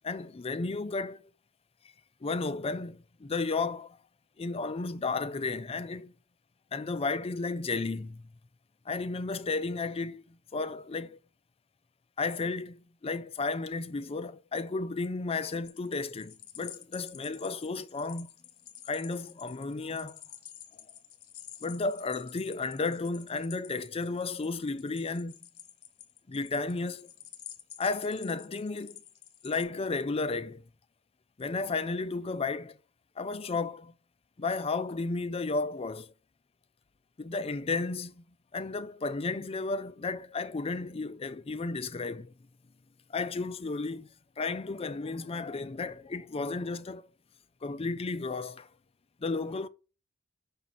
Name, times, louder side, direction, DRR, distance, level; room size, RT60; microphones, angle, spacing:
voice 1, 0.0-1.2 2.2-4.0 4.4-6.2 6.7-8.3 8.9-11.2 12.2-18.3 18.9-20.2 21.6-25.4 26.3-27.1 27.8-29.0 29.4-30.6 31.4-32.8 33.2-33.9 34.4-36.1 37.2-38.2 38.5-42.3 43.1-44.1 44.4-47.1 47.6-48.7 49.2-49.7, left 3 dB, 25° left, 0.4 m, -33 dB
sound 1, 15.6-29.6, left 11 dB, 65° left, 1.1 m, -50 dB
6.0 x 5.4 x 4.2 m
head